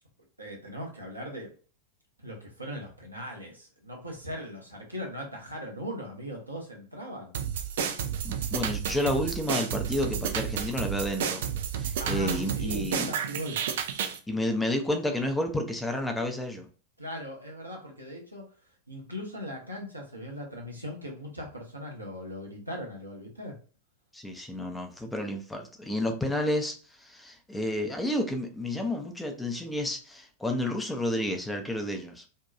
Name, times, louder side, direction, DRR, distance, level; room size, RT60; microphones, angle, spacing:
voice 1, 0.4-1.5 2.2-7.4 12.0-13.6 17.0-18.5 18.9-23.6, equal, 85° right, -1 dB, 0.7 m, -39 dB
sound 1, 7.3-14.2, right 8 dB, 55° right, 0.3 m, -31 dB
voice 2, 8.2-11.5 11.7-13.1 14.3-16.7 24.1-32.2, left 1 dB, 5° left, 3 dB, 0.5 m, -31 dB
2.7 x 2.2 x 2.3 m, 0.38 s
figure-of-eight pair, 90°, 0 cm